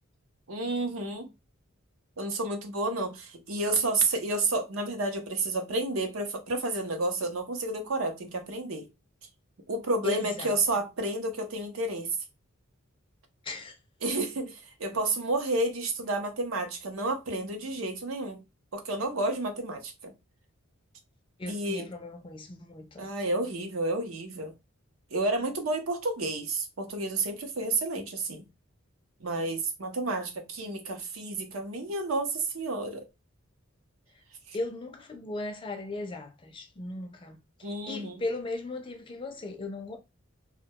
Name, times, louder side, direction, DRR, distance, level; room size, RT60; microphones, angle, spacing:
voice 1, 0.5-1.3 2.2-8.9 9.7-12.2 14.0-18.4 18.7-20.1 21.5-21.9 23.0-24.5 25.1-28.4 29.2-33.0 34.5-34.6 37.6-38.2, right 2 dB, 80° right, 0.7 m, -30 dB
voice 2, 10.0-10.6 13.4-13.8 21.4-23.1 34.5-40.0, left 2 dB, 25° left, 0.4 m, -37 dB
2.2 x 2.2 x 2.7 m
head